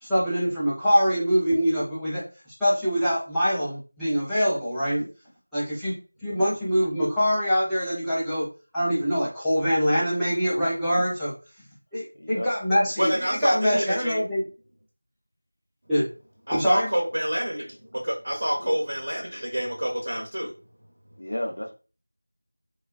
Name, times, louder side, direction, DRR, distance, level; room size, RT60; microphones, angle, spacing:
voice 1, 0.0-2.2 2.6-5.1 5.5-5.9 6.2-8.5 8.7-11.3 11.9-14.4 15.9-16.1 16.5-16.9, equal, ahead, -16 dB, 0.5 m, -24 dB
voice 2, 12.2-12.5 18.6-18.8 21.2-21.7, left 1 dB, 60° left, 4 dB, 0.5 m, -32 dB
voice 3, 13.0-14.2 16.5-17.8 18.0-20.5, equal, 50° right, -1 dB, 0.6 m, -27 dB
3.4 x 2.3 x 2.2 m, 0.34 s
figure-of-eight pair, 175°, 0 cm